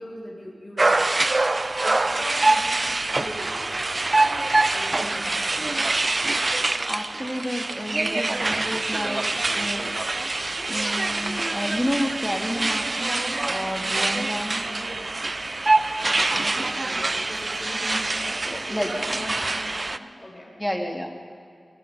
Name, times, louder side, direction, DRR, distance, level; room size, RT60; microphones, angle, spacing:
voice 1, 0.0-1.5 1.8-2.8 3.1-4.1 4.7-5.9 15.9-20.5, left 1 dB, 25° left, -2 dB, 6.3 m, -39 dB
sound 1, 0.8-20.0, right 2 dB, 40° right, 0.7 m, -25 dB
voice 2, 6.9-9.9 10.7-14.7 18.4-19.0 20.6-21.1, equal, 5° left, 3 dB, 2.3 m, -30 dB
24.0 x 22.5 x 5.4 m, 2.3 s
wide cardioid pair, 65°, 0 cm